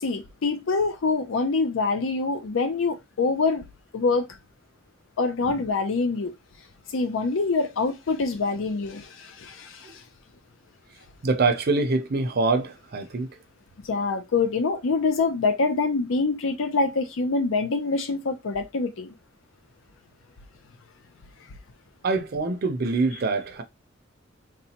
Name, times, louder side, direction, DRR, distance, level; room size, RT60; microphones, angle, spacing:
voice 1, 0.0-3.6 3.9-4.3 5.2-6.3 6.9-10.0 13.8-19.1, left 4 dB, 80° left, 0.5 m, -25 dB
voice 2, 11.2-13.3 22.0-23.6, right 3 dB, 50° right, 0.5 m, -24 dB
4.0 x 2.2 x 2.8 m
head